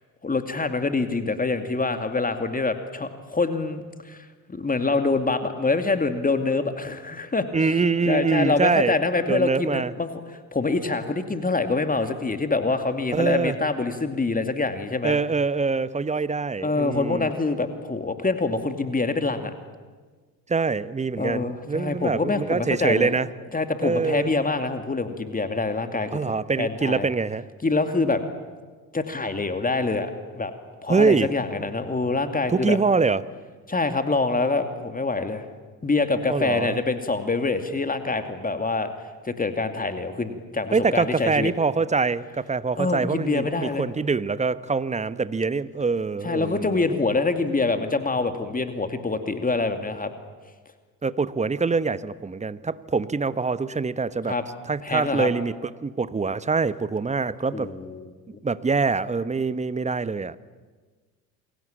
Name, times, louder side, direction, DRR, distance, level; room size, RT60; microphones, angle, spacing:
voice 1, 0.2-7.5 8.1-10.2 10.5-15.2 16.6-19.5 21.2-23.1 23.5-27.1 27.6-28.2 28.9-30.5 30.8-32.8 33.7-35.5 35.8-38.9 39.2-41.5 42.8-43.9 46.2-50.1 54.3-54.4 54.8-55.3 57.5-58.1, left 3 dB, 15° left, 8 dB, 2.5 m, -25 dB
voice 2, 7.5-9.0 9.3-9.9 13.1-13.5 15.0-17.3 20.5-23.3 23.8-24.3 26.1-27.4 30.9-31.3 32.5-33.2 36.3-36.8 40.7-46.9 51.0-54.3 54.7-55.5 55.8-57.7 58.4-60.4, right 4 dB, 15° right, 16 dB, 1.0 m, -24 dB
28.0 x 23.5 x 8.9 m, 1.4 s
figure-of-eight pair, 60°, 49 cm